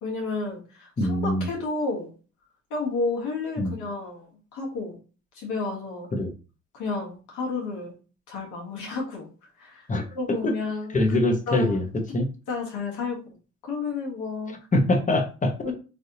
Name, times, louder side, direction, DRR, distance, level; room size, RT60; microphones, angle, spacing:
voice 1, 0.0-2.1 2.7-5.0 5.3-6.1 6.7-7.9 8.3-9.3 9.6-9.9 10.1-11.0 11.5-11.8 12.5-13.2 13.6-14.5 15.6-15.7, left 3 dB, 85° left, -2 dB, 1.3 m, -31 dB
voice 2, 1.0-1.5 3.6-3.7 6.1-6.3 9.9-10.0 10.4-10.5 10.9-11.9 12.1-12.3 14.7-15.7, left 1 dB, 25° left, 5 dB, 0.8 m, -23 dB
3.3 x 2.6 x 2.7 m, 0.34 s
cardioid pair, 90°, 30 cm